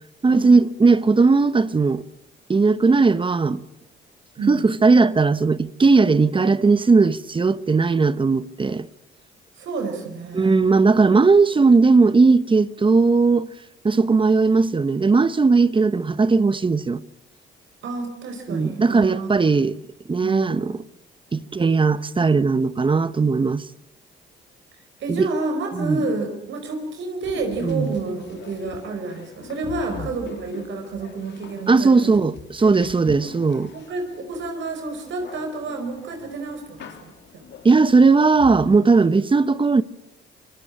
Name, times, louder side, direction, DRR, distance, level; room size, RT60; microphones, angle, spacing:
voice 1, 0.2-2.0 2.5-3.6 4.5-8.9 10.3-13.5 13.8-17.0 18.5-19.7 20.1-20.8 21.3-23.6 25.1-25.3 25.7-26.0 27.6-27.9 31.7-33.7 37.6-39.8, right 4 dB, 25° right, 0.9 m, -17 dB
voice 2, 9.6-10.6 17.8-19.5 20.2-20.7 25.0-32.1 32.6-32.8 33.2-33.3 33.7-37.4, right 3 dB, 70° right, 5.1 m, -30 dB
sound 1, 27.2-38.8, left 7 dB, 65° left, 3.1 m, -43 dB
26.0 x 20.0 x 8.7 m
cardioid pair, 90°, 20 cm